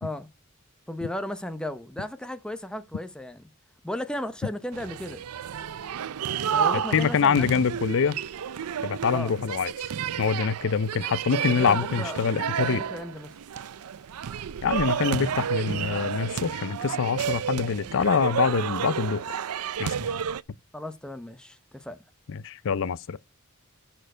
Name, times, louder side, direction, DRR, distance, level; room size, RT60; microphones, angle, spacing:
voice 1, 0.9-3.4 3.8-5.2 6.5-7.6 9.1-9.3 11.5-12.2 12.6-13.3 20.7-22.0, left 1 dB, 5° left, 0.7 m, -35 dB
sound 1, 4.7-20.4, right 8 dB, 90° right, 0.5 m, -31 dB
voice 2, 6.9-8.2 8.8-9.7 10.2-12.8 14.6-19.2 19.8-19.9 22.3-23.2, left 6 dB, 60° left, 0.5 m, -25 dB
11.5 x 4.6 x 4.4 m
head